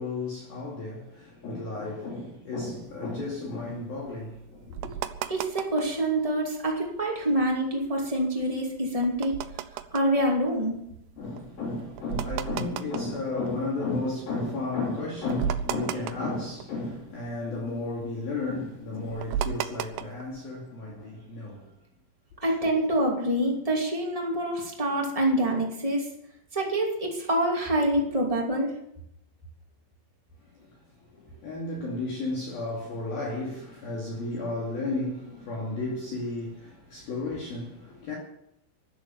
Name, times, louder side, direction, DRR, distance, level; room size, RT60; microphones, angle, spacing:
voice 1, 0.0-4.9 11.2-21.7 30.5-30.7 31.1-38.2, left 2 dB, 50° left, 3.9 m, -33 dB
sound 1, 2.8-6.0 6.4-7.0 7.5-14.2 14.6-14.7 15.0-17.1 17.4-20.4, right 9 dB, 85° right, 2.4 m, -35 dB
voice 2, 5.3-9.3 9.9-10.7 22.4-26.1 26.5-28.7, right 1 dB, 60° right, 0.3 m, -26 dB
13.0 x 12.0 x 7.2 m
omnidirectional pair, 5.9 m